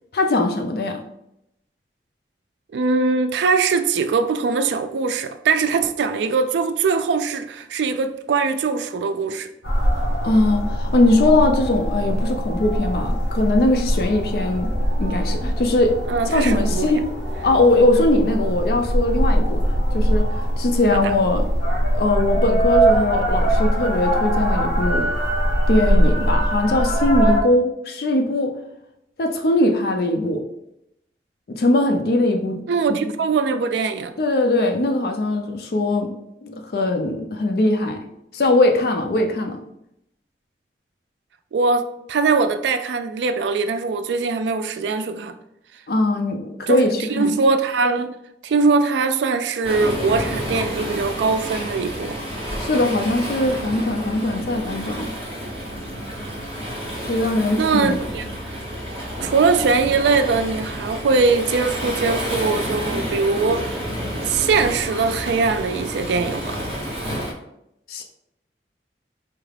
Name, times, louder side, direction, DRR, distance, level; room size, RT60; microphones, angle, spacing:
voice 1, 0.1-1.0 10.2-14.7 15.0-16.0 16.3-17.0 17.4-19.6 19.9-20.3 20.6-21.5 21.9-25.1 25.7-28.5 29.2-30.4 31.6-32.6 32.9-33.1 34.2-36.1 36.4-38.0 38.3-39.6 45.9-47.4 52.6-55.1 57.1-58.0 67.9-68.0, left 2 dB, 55° left, 0.4 m, -20 dB
voice 2, 2.7-9.5 16.1-16.9 20.9-21.1 32.7-34.1 41.5-45.3 46.7-46.8 47.1-48.1 48.4-52.2 57.5-58.2 59.2-63.8 64.3-66.6, right 4 dB, 80° right, 0.3 m, -21 dB
sound 1, 9.6-27.4, right 1 dB, 75° left, 0.9 m, -21 dB
Waves surf, 49.6-67.3, equal, 30° right, 1.0 m, -29 dB
4.5 x 2.4 x 3.3 m
head